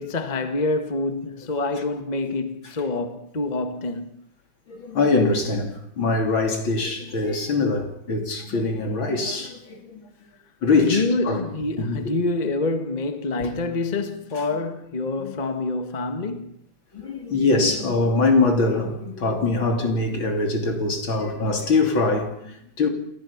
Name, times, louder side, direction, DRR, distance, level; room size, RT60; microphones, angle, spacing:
voice 1, 0.0-4.3 10.9-16.6, left 3 dB, 25° left, 1.4 m, -26 dB
voice 2, 4.7-10.1 10.6-11.4 11.7-12.2 13.4-13.5 15.2-15.3 16.9-22.9, left 3 dB, 75° left, 3.9 m, -23 dB
29.0 x 13.5 x 7.2 m
omnidirectional pair, 2.2 m